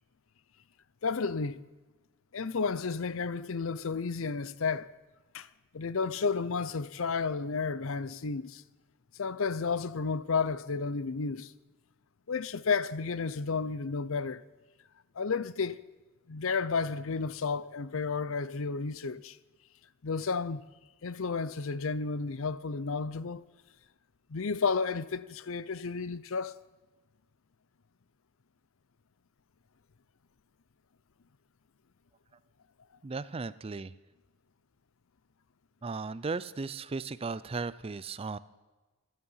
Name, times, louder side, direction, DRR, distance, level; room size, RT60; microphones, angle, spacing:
voice 1, 1.0-1.6 2.3-4.9 5.3-5.5 5.7-8.6 9.2-11.5 12.3-14.4 15.2-15.8 16.3-19.4 20.0-20.6 21.0-23.4 24.3-26.5, left 4 dB, 65° left, 0.6 m, -32 dB
voice 2, 33.0-33.9 35.8-38.4, right 4 dB, 25° right, 0.4 m, -36 dB
25.5 x 9.7 x 5.6 m
head